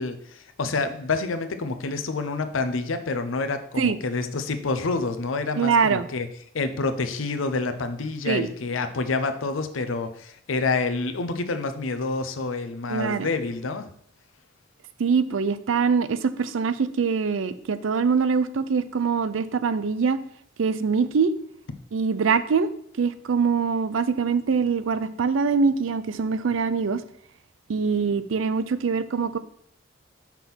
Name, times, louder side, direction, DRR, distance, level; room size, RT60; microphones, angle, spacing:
voice 1, 0.0-6.3 6.5-13.9, left 3 dB, 90° left, 8 dB, 0.7 m, -28 dB
voice 2, 5.6-6.1 8.3-8.5 12.9-13.3 15.0-20.2 20.6-21.3 21.9-22.7 23.0-27.0 27.7-29.4, right 5 dB, 80° right, 13 dB, 0.5 m, -23 dB
5.8 x 3.6 x 6.0 m, 0.67 s
head